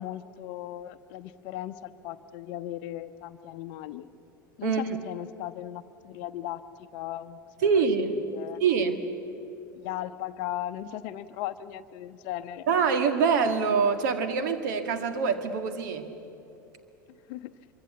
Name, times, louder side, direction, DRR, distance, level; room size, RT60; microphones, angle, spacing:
voice 1, 0.0-4.1 4.6-6.6 6.9-8.6 9.7-12.7 17.1-17.5, left 13 dB, 50° left, 12 dB, 0.8 m, -37 dB
voice 2, 7.6-8.2 8.6-9.0 12.7-16.1, right 5 dB, 60° right, 8 dB, 1.9 m, -25 dB
25.0 x 23.5 x 8.3 m, 2.9 s
figure-of-eight pair, 80°, 11 cm